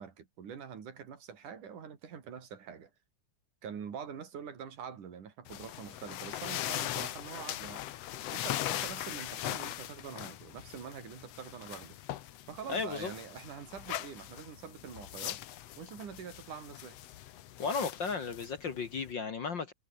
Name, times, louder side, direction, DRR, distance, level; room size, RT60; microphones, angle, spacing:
voice 1, 0.0-2.9 3.6-7.8 8.3-12.0 12.5-15.4 15.8-17.0, right 7 dB, 85° right, 4.7 m, -45 dB
sound 1, 5.5-19.1, left 13 dB, 65° left, 1.9 m, -40 dB
voice 2, 12.7-13.1 17.6-19.7, left 5 dB, 50° left, 1.5 m, -34 dB
omnidirectional pair, 3.5 m